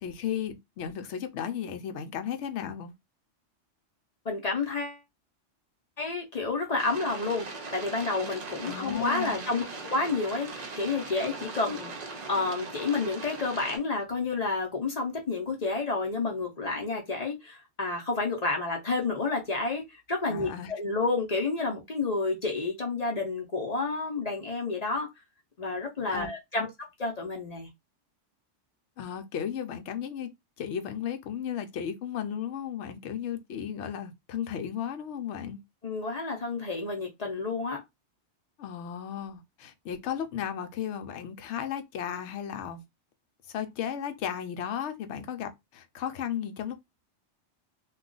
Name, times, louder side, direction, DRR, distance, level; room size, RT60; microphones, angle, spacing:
voice 1, 0.0-2.9 8.6-9.4 20.3-20.7 26.1-26.3 29.0-30.3 30.6-35.6 38.6-42.8 43.5-46.8, left 9 dB, 70° left, 0.9 m, -34 dB
voice 2, 4.2-5.0 6.0-25.1 25.6-26.7 27.0-27.7 35.8-37.8, left 3 dB, 40° left, 0.7 m, -30 dB
sound 1, 6.8-13.8, right 3 dB, 45° right, 0.6 m, -40 dB
2.3 x 2.3 x 3.8 m
omnidirectional pair, 1.3 m